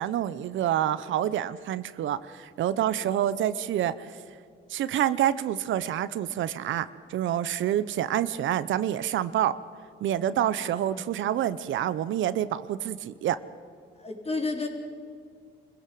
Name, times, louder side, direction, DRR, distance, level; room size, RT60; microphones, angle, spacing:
voice 1, 0.0-4.1 4.7-9.5 10.0-13.4, right 11 dB, 75° right, 15 dB, 0.8 m, -27 dB
voice 2, 10.6-10.9 14.0-14.7, left 3 dB, 30° left, 2 dB, 3.8 m, -32 dB
25.5 x 15.5 x 7.7 m, 2.2 s
cardioid pair, 90°, 20 cm